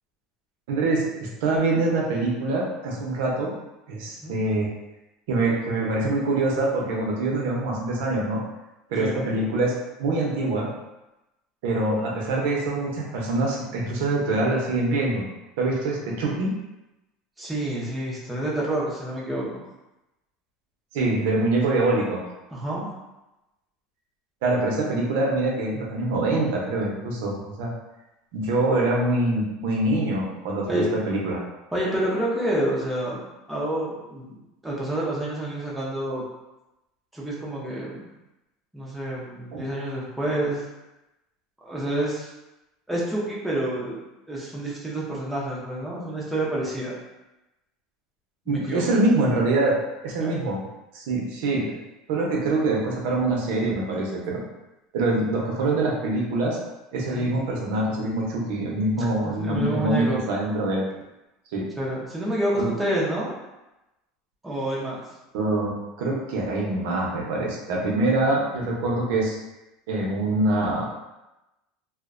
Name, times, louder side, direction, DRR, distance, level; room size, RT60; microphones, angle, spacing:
voice 1, 0.7-3.5 3.9-4.7 5.3-8.4 8.9-10.7 11.6-15.2 15.6-16.5 20.9-22.2 24.4-27.7 28.3-31.4 39.5-39.6 48.5-49.7 50.0-50.6 50.9-51.7 52.1-54.4 54.9-56.6 56.9-60.9 61.5-61.7 62.5-62.7 65.3-69.4 69.9-70.8, right 2 dB, 75° right, -2 dB, 0.6 m, -24 dB
voice 2, 17.4-19.7 22.5-22.9 30.7-30.9 31.7-33.2 33.5-36.2 37.1-38.1 38.7-40.7 41.6-42.3 42.9-44.0 44.3-47.0 48.5-48.9 50.2-50.4 57.0-57.4 59.0-60.2 61.8-63.4 64.4-65.0, right 1 dB, 5° right, -6 dB, 0.5 m, -28 dB
2.4 x 2.1 x 2.4 m, 0.98 s
supercardioid pair, 150°, 0 cm